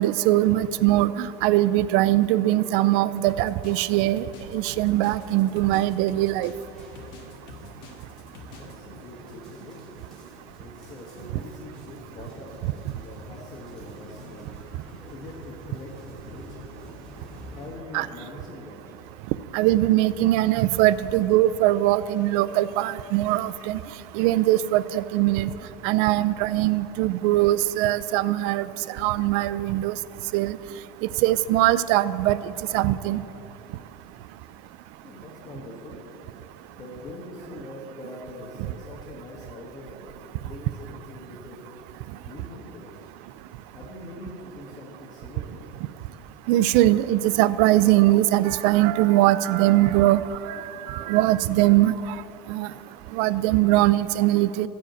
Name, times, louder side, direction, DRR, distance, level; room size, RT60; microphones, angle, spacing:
voice 1, 0.0-4.3 4.5-6.5 17.9-18.1 19.5-23.8 24.1-25.5 25.8-28.7 29.0-30.0 30.3-30.6 31.2-32.4 32.7-33.2 46.5-50.2 50.5-51.9 52.5-52.7 53.1-54.7, right 15 dB, 60° right, 17 dB, 0.4 m, -21 dB
sound 1, 3.3-8.8, left 3 dB, 75° left, 1.7 m, -45 dB
sound 2, 4.7-17.7, equal, ahead, 3.1 m, -47 dB
voice 2, 8.3-9.8 10.6-16.7 17.5-18.9 35.0-36.0 36.7-41.7 42.2-43.1 43.7-45.6, left 2 dB, 30° left, -2 dB, 1.5 m, -43 dB
13.5 x 5.0 x 8.0 m, 3.0 s
supercardioid pair, 150°, 12 cm